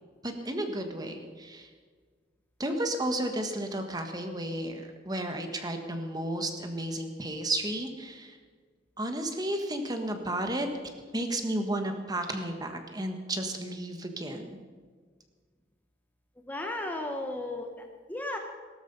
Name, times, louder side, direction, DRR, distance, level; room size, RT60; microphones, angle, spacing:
voice 1, 0.2-1.7 2.6-8.4 9.0-10.7 11.1-14.6, right 1 dB, 20° right, 5 dB, 1.5 m, -33 dB
voice 2, 16.4-18.4, left 1 dB, 10° left, 3 dB, 1.2 m, -35 dB
18.0 x 13.0 x 5.4 m, 1.5 s
head